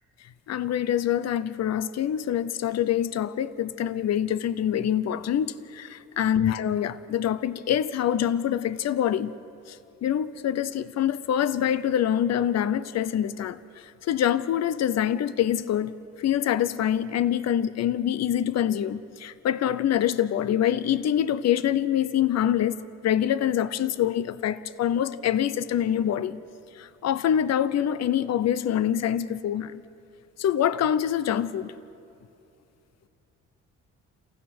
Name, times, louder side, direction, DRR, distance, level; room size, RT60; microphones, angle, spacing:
voice 1, 0.5-9.3 9.7-9.8 10.0-13.6 14.0-15.9 16.2-22.8 23.0-26.4 26.8-29.7 30.4-31.7, left 10 dB, 60° left, 0.7 m, -25 dB
29.5 x 15.5 x 6.1 m
cardioid pair, 90°, 30 cm